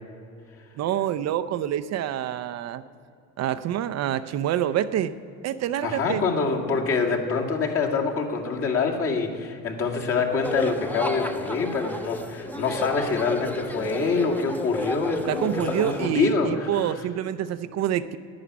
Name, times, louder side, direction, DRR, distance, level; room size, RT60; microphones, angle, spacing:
voice 1, 0.8-2.8 3.4-5.1 5.4-6.2 15.3-18.2, right 10 dB, 50° right, 10 dB, 0.6 m, -27 dB
voice 2, 5.8-17.0, left 4 dB, 40° left, 1 dB, 2.2 m, -26 dB
sound 1, 10.4-16.1, left 1 dB, 5° left, 0.9 m, -32 dB
11.5 x 9.8 x 9.4 m, 2.6 s
cardioid pair, 120°, 33 cm